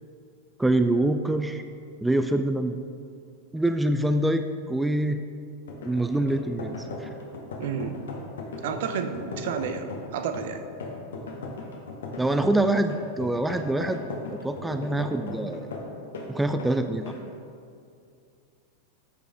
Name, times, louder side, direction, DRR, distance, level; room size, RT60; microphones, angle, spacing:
voice 1, 0.6-1.6 2.0-2.8 3.5-5.2 5.8-7.1 12.2-14.0 14.3-15.7 16.3-17.2, right 1 dB, 5° right, 8 dB, 0.3 m, -25 dB
sound 1, 5.6-16.3 16.6-16.8 17.1-17.3, left 3 dB, 65° left, 1.2 m, -37 dB
voice 2, 7.6-8.0 8.6-10.7, right 6 dB, 55° right, 8 dB, 0.6 m, -31 dB
14.0 x 5.2 x 3.6 m, 2.4 s
figure-of-eight pair, 90°, 0 cm